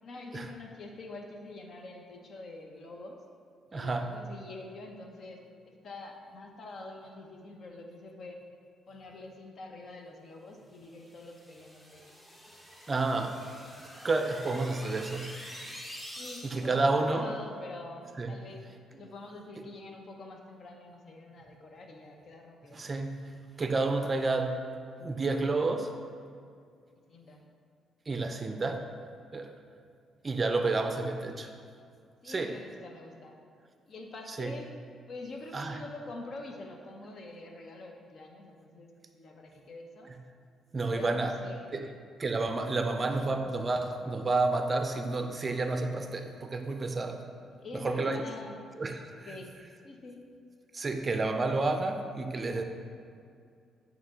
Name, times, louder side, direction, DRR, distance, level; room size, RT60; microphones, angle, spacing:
voice 1, 0.0-3.2 3.7-8.4 8.9-12.0 12.3-12.4 16.2-18.6 19.0-23.1 27.1-27.5 32.2-33.4 33.9-34.7 35.1-40.1 40.9-41.7 47.6-48.6 49.1-50.3, left 2 dB, 55° left, 2 dB, 0.7 m, -46 dB
voice 2, 3.7-4.1 12.9-13.4 14.0-15.4 16.4-17.3 18.2-18.4 22.7-24.6 25.0-25.9 28.1-28.9 29.3-29.5 30.2-31.5 32.2-32.5 34.3-34.5 35.5-35.8 40.7-41.3 41.7-41.9 42.2-47.3 47.7-48.2 48.8-49.4 50.7-52.6, right 3 dB, 30° right, 6 dB, 0.4 m, -30 dB
sound 1, 10.9-16.9, equal, 10° left, 0.7 m, -47 dB
8.8 x 3.0 x 3.7 m, 2.4 s
cardioid pair, 90°, 0 cm